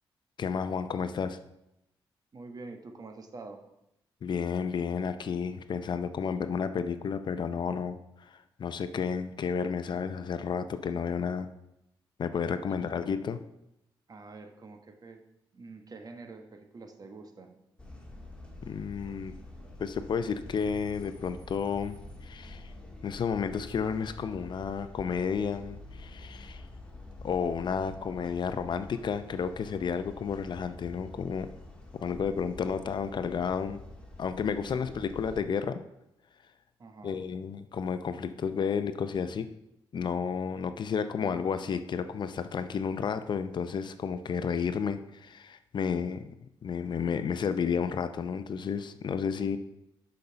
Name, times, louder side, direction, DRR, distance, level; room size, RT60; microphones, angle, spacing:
voice 1, 0.4-1.4 4.2-11.5 12.2-13.4 18.7-19.3 19.8-22.0 22.2-22.7 23.0-26.6 27.2-31.5 31.9-33.8 34.2-35.8 37.0-39.5 39.9-46.3 46.6-49.6, left 6 dB, 55° left, 11 dB, 0.6 m, -32 dB
voice 2, 2.3-3.6 12.7-13.0 14.1-15.2 15.5-17.6 34.7-35.1 36.8-37.2, right 3 dB, 45° right, 6 dB, 1.2 m, -46 dB
sound 1, 17.8-35.4, left 2 dB, 10° left, 1.8 m, -47 dB
6.6 x 5.3 x 5.7 m, 0.84 s
cardioid pair, 80°, 9 cm